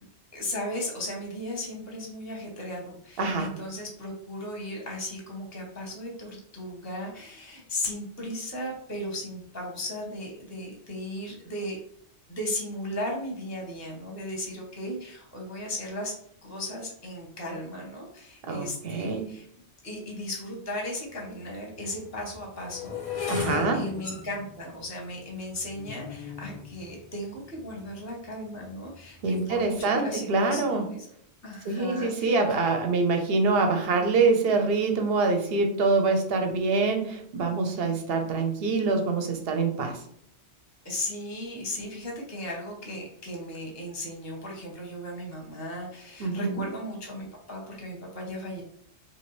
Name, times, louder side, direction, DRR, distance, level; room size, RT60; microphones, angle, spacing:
voice 1, 0.3-11.8 12.3-16.1 16.4-19.4 19.8-31.1 31.4-32.4 40.8-48.6, left 1 dB, 15° left, -1 dB, 0.7 m, -36 dB
voice 2, 3.2-3.5 18.5-19.3 23.3-23.9 29.2-30.8 31.7-40.0 46.2-46.6, right 3 dB, 60° right, 5 dB, 0.7 m, -25 dB
sound 1, 20.9-21.0 21.7-27.9 28.6-28.9 29.2-29.6, left 7 dB, 55° left, 0.3 m, -37 dB
2.9 x 2.5 x 3.0 m, 0.67 s
omnidirectional pair, 1.3 m